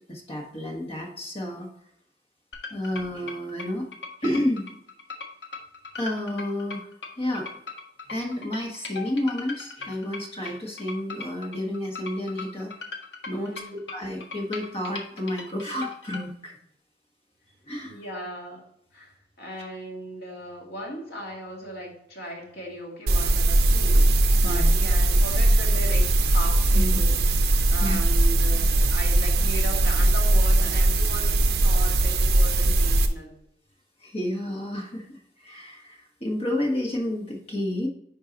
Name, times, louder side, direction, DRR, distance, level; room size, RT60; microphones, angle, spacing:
voice 1, 0.1-1.7 2.7-3.9 4.2-4.7 6.0-6.9 7.2-7.5 8.1-12.7 13.3-16.5 17.7-18.0 24.4-24.7 26.7-27.0 27.8-28.0 34.0-37.9, left 1 dB, 35° left, 0 dB, 1.5 m, -30 dB
sound 1, 2.5-16.2, left 4 dB, 80° left, 1.2 m, -39 dB
voice 2, 13.3-13.8 17.8-18.6 18.9-27.2 27.5-33.4, equal, 60° left, -2 dB, 2.6 m, -37 dB
sound 2, 23.1-33.1, right 1 dB, 60° right, 0.7 m, -20 dB
10.0 x 4.5 x 2.9 m, 0.73 s
head